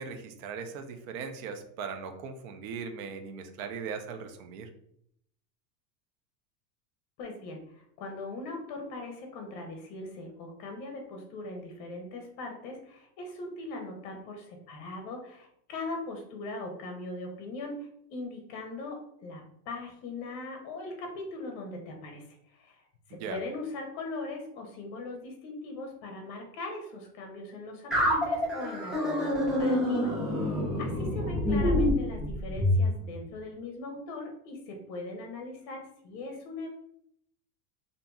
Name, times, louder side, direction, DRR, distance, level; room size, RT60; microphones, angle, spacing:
voice 1, 0.0-4.7 23.1-23.4, right 6 dB, 55° right, 6 dB, 0.6 m, -39 dB
voice 2, 7.2-30.1 30.4-36.7, left 2 dB, 40° left, 2 dB, 0.6 m, -40 dB
sound 1, 27.9-32.8, left 1 dB, ahead, 0.5 m, -27 dB
2.7 x 2.6 x 2.2 m, 0.71 s
supercardioid pair, 130°, 50 cm